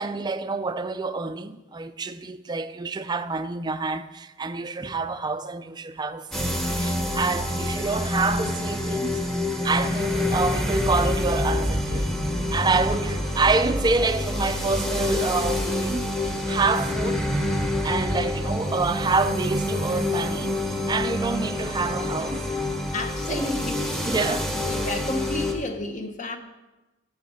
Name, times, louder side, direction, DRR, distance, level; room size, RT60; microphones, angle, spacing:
voice 1, 0.0-6.5 6.7-9.2 9.6-12.2 12.5-17.3 17.8-22.5 23.3-23.5 24.1-24.8, right 4 dB, 20° right, 0.4 m, -27 dB
sound 1, 6.3-25.5, left 1 dB, ahead, 0.9 m, -27 dB
voice 2, 22.9-24.4 24.7-26.4, left 2 dB, 40° left, 0.9 m, -31 dB
9.1 x 6.4 x 5.5 m
head